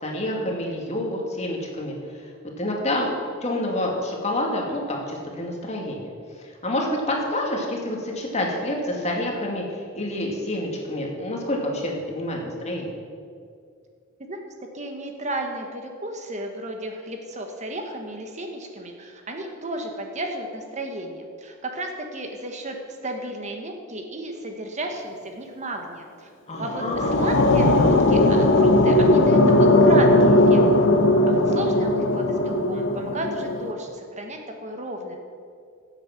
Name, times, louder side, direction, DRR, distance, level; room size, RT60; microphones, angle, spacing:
voice 1, 0.0-2.0 2.6-3.1 3.4-6.1 6.6-13.0 26.5-27.1, left 1 dB, 35° left, 0 dB, 2.2 m, -28 dB
voice 2, 14.3-22.8 23.0-26.3 26.6-30.6 31.3-35.2, right 1 dB, 35° right, 3 dB, 1.3 m, -33 dB
sound 1, 26.5-33.7, left 1 dB, 60° left, 0.9 m, -18 dB
16.0 x 8.3 x 5.9 m, 2.3 s
head